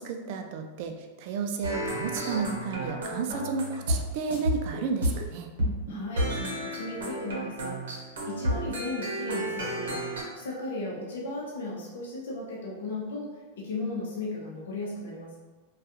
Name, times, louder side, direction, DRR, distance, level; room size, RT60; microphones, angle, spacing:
voice 1, 0.0-5.5, right 5 dB, 60° right, 5 dB, 0.3 m, -32 dB
sound 1, 1.6-4.0 4.3-5.2 5.6-10.2, right 1 dB, 85° right, 0.8 m, -31 dB
voice 2, 5.9-7.8 8.3-13.3 13.6-15.4, left 2 dB, 80° left, -4 dB, 0.6 m, -36 dB
2.3 x 2.3 x 2.8 m, 1.3 s
hypercardioid pair, 120°, 0 cm